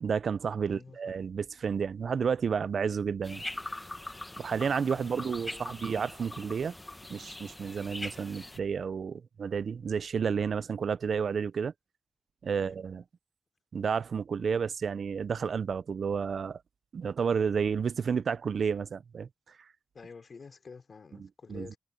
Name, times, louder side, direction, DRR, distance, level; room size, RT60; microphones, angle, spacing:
voice 1, 0.0-3.4 4.4-6.7 7.1-11.7 12.4-13.0 13.7-16.6 16.9-19.3 21.5-21.7, right 6 dB, 85° right, 0.3 m, -31 dB
voice 2, 0.6-1.1 4.9-5.8 12.5-12.8 19.9-21.8, left 5 dB, 60° left, 3.7 m, -49 dB
sound 1, 3.2-8.6, left 2 dB, 15° left, 1.0 m, -42 dB
wide cardioid pair, 130°, 0 cm